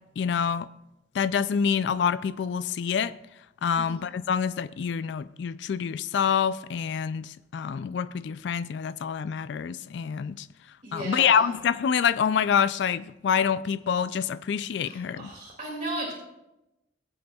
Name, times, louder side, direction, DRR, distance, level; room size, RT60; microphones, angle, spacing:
voice 1, 0.2-0.7 1.1-3.1 3.6-10.5 10.9-15.3, left 7 dB, 65° left, 0.3 m, -26 dB
voice 2, 10.8-11.5 14.8-16.1, right 1 dB, 40° right, 2.4 m, -35 dB
20.5 x 7.8 x 2.3 m
head